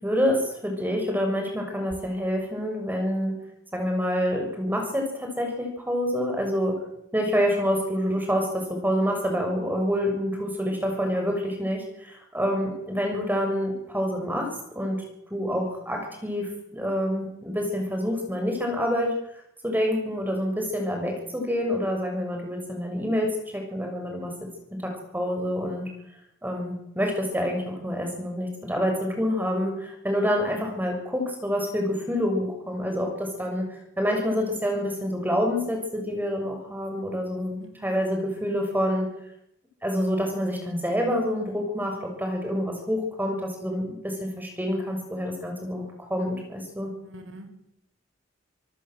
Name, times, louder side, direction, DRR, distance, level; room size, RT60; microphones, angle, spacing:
voice 1, 0.0-3.4 3.7-6.7 7.1-14.5 14.7-15.0 15.3-19.1 19.6-24.3 24.8-25.9 26.4-39.1 39.8-46.9, equal, 10° right, 2 dB, 6.8 m, -27 dB
voice 2, 37.6-37.9 44.7-45.0 47.0-47.5, equal, 65° right, 6 dB, 5.3 m, -46 dB
27.0 x 18.5 x 7.9 m, 0.79 s
head